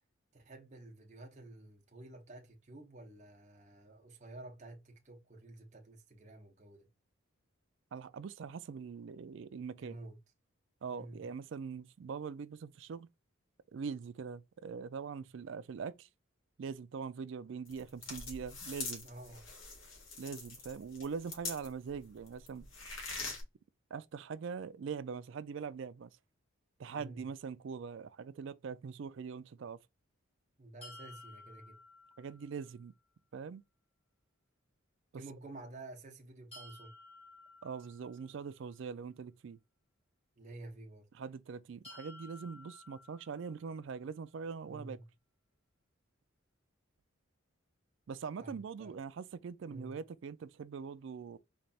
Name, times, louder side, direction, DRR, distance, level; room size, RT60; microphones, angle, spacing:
voice 1, 0.3-6.9 9.8-10.2 10.9-11.2 19.0-19.5 26.9-27.2 30.6-31.8 35.1-36.9 40.4-41.1 44.7-45.0 48.4-48.9 49.7-50.0, right 2 dB, 35° right, 0.9 m, -51 dB
voice 2, 7.9-10.0 10.8-13.1 13.7-16.1 16.6-19.1 20.2-22.7 23.9-26.1 26.8-29.8 32.2-32.9 33.3-33.6 35.1-35.2 37.6-39.6 41.1-45.0 48.1-51.4, right 6 dB, 60° right, 0.3 m, -42 dB
sound 1, 17.7-21.9 22.3-23.4, left 3 dB, 65° left, 1.8 m, -43 dB
sound 2, 30.8-32.8 36.5-38.6 41.8-43.9, left 2 dB, 30° left, 2.2 m, -55 dB
4.1 x 3.2 x 2.3 m
head